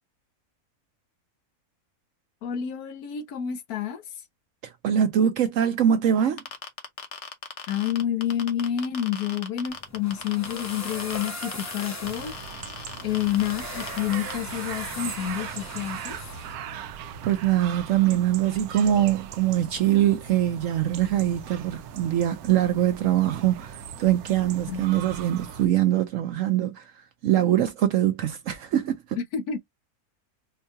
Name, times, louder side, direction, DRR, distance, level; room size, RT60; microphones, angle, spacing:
voice 1, 2.4-4.0 7.7-12.3 13.0-16.2 24.7-24.9 29.2-29.6, left 10 dB, 85° left, 1.3 m, -29 dB
voice 2, 4.6-6.4 17.2-26.9 27.2-29.2, right 11 dB, 70° right, 0.9 m, -23 dB
sound 1, 6.4-14.3, left 6 dB, 55° left, 1.1 m, -38 dB
sound 2, 9.7-16.5, left 2 dB, 25° left, 0.4 m, -39 dB
sound 3, 12.0-25.7, right 8 dB, 85° right, 1.1 m, -39 dB
4.6 x 2.2 x 2.7 m
omnidirectional pair, 1.6 m